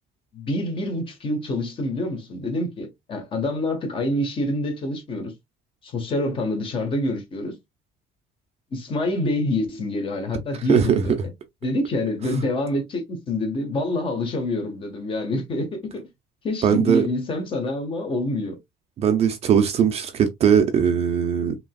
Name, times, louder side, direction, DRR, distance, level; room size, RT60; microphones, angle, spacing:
voice 1, 0.3-5.3 5.8-7.5 8.7-11.3 11.6-16.0 16.4-18.6, left 1 dB, 30° left, 1.3 m, -26 dB
voice 2, 10.7-11.0 16.6-17.1 19.0-21.6, right 8 dB, 35° right, 0.6 m, -19 dB
5.1 x 3.0 x 2.3 m
cardioid pair, 170°, 17 cm